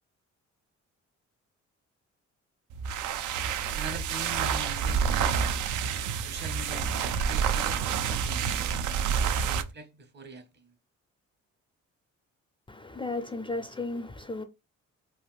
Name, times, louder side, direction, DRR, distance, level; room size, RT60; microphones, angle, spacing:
sound 1, 2.7-9.7, right 7 dB, 80° right, 0.5 m, -28 dB
voice 1, 3.7-5.6 6.2-8.9 9.4-10.7, right 2 dB, 35° right, 0.7 m, -43 dB
voice 2, 12.7-14.4, left 2 dB, 15° left, 0.4 m, -34 dB
3.4 x 2.5 x 2.3 m
cardioid pair, 90°, 30 cm